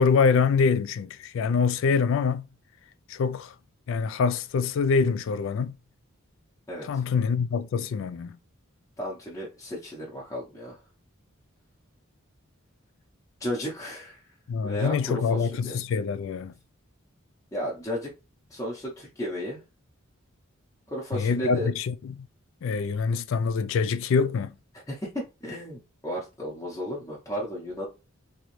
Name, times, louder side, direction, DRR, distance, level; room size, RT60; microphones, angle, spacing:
voice 1, 0.0-2.5 3.1-3.5 3.9-5.7 6.8-8.4 14.5-16.5 21.1-22.3 22.6-24.5, left 5 dB, 60° left, 0.3 m, -25 dB
voice 2, 6.7-7.0 9.0-10.8 13.4-14.2 14.6-15.8 17.5-18.1 18.5-19.6 20.9-21.7 24.9-27.9, equal, 15° left, 0.7 m, -34 dB
3.0 x 2.6 x 3.1 m
head